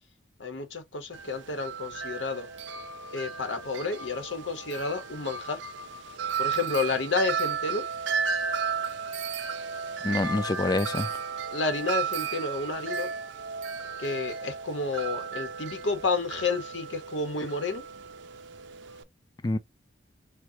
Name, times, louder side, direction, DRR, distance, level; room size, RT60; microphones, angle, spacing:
voice 1, 0.4-2.5 3.1-5.6 6.4-7.8 11.5-13.1 14.0-17.8, left 3 dB, 90° left, 1.1 m, -30 dB
Wind chime, 1.1-19.0, right 6 dB, 80° right, 0.6 m, -34 dB
voice 2, 10.0-11.2 19.4-19.6, left 2 dB, 20° left, 0.3 m, -27 dB
4.6 x 2.3 x 2.8 m
head